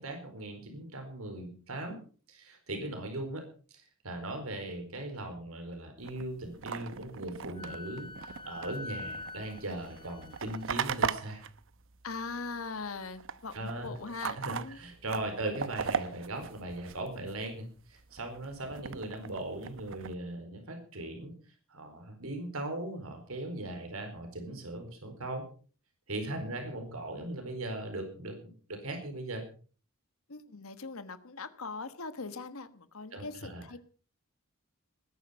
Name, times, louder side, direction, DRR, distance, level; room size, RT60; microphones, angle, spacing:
voice 1, 0.0-2.0 2.3-11.4 13.5-13.9 14.4-21.4 21.7-25.4 26.1-29.4 33.1-33.7, right 1 dB, 90° right, 5 dB, 4.5 m, -39 dB
sound 1, 6.0-12.6 12.9-17.5 17.9-20.1, right 6 dB, 65° right, 0.9 m, -39 dB
Wind instrument woodwind instrument, 7.5-11.0, left 3 dB, 25° left, 1.0 m, -45 dB
voice 2, 12.0-14.8 26.4-26.6 30.3-33.8, left 4 dB, 80° left, 11 dB, 1.4 m, -41 dB
20.0 x 10.5 x 5.8 m, 0.41 s
head